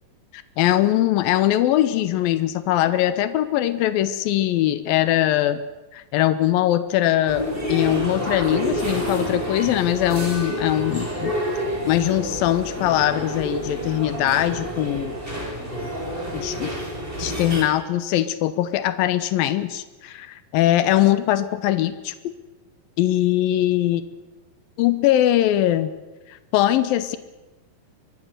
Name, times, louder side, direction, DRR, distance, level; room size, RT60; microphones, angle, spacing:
voice 1, 0.6-5.6 5.9-11.4 11.9-15.4 16.3-16.7 17.2-22.1 23.0-24.0 24.8-25.9 26.5-27.2, left 13 dB, 85° left, 12 dB, 2.7 m, -21 dB
sound 1, 7.3-17.6, equal, 15° right, 5.0 m, -28 dB
24.5 x 21.0 x 6.6 m, 1.1 s
omnidirectional pair, 4.0 m